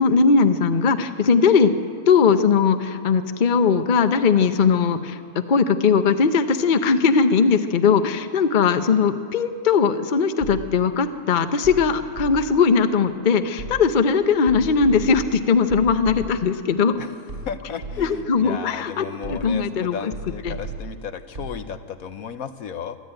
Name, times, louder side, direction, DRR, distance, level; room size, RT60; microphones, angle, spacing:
voice 1, 0.0-1.7 2.1-17.0 18.0-20.1 20.4-20.5, left 5 dB, 40° left, 9 dB, 0.9 m, -19 dB
sound 1, 10.4-10.9 11.6-12.7 13.6-14.1 14.5-16.6 17.3-18.3 19.2-19.7 20.1-21.6, right 2 dB, 55° right, 3.8 m, -35 dB
voice 2, 17.4-23.0, left 7 dB, 70° left, 10 dB, 1.2 m, -34 dB
23.0 x 12.5 x 9.0 m, 2.2 s
omnidirectional pair, 1.6 m